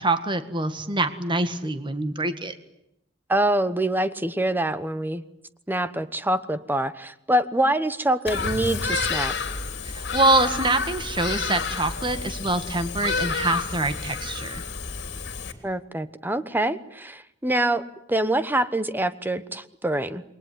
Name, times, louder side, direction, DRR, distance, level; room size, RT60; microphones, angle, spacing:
voice 1, 0.0-2.5 9.9-14.6, right 2 dB, 25° right, 10 dB, 1.8 m, -25 dB
voice 2, 3.3-5.2 5.7-9.3 15.6-20.2, right 1 dB, 10° right, 13 dB, 1.1 m, -25 dB
Bird vocalization bird call bird song, 8.3-15.5, left 4 dB, 65° left, 3.3 m, -30 dB
28.0 x 22.0 x 9.5 m, 0.80 s
head